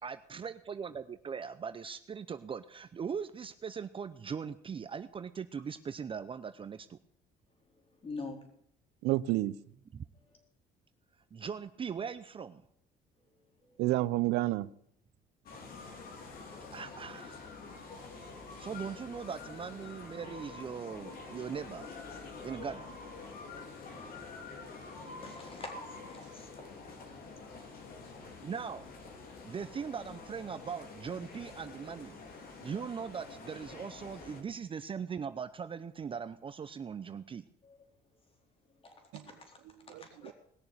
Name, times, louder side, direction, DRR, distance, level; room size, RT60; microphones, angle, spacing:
voice 1, 0.0-7.0 9.9-10.0 11.3-12.6 16.7-17.5 18.6-21.9 22.4-23.0 28.4-28.8 29.4-32.2 32.6-37.4, right 6 dB, 30° right, 0.7 m, -40 dB
voice 2, 7.8-8.4 10.2-10.4 13.6-13.8 25.2-26.5 37.6-37.8 38.8-39.6 39.9-40.3, left 3 dB, 35° left, 4.1 m, -46 dB
voice 3, 9.0-9.5 13.8-14.7 39.1-39.2 39.9-40.3, right 17 dB, 90° right, 0.7 m, -30 dB
sound 1, 15.5-34.4, left 4 dB, 60° left, 3.6 m, -47 dB
19.5 x 7.0 x 8.0 m
cardioid pair, 110°, 17 cm